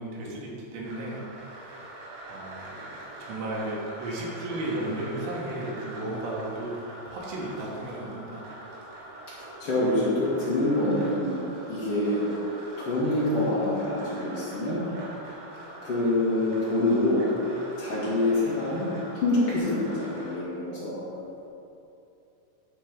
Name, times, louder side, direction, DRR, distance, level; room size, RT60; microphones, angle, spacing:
voice 1, 0.0-6.7 7.1-8.4, right 1 dB, 70° right, -4 dB, 3.5 m, -35 dB
sound 1, 0.8-20.4, right 1 dB, 85° right, 4.3 m, -43 dB
voice 2, 9.4-12.3 12.8-14.8 15.8-17.3 17.8-18.9 19.1-21.0, left 1 dB, 85° left, -8 dB, 1.2 m, -26 dB
13.0 x 4.5 x 5.2 m, 2.7 s
omnidirectional pair, 5.4 m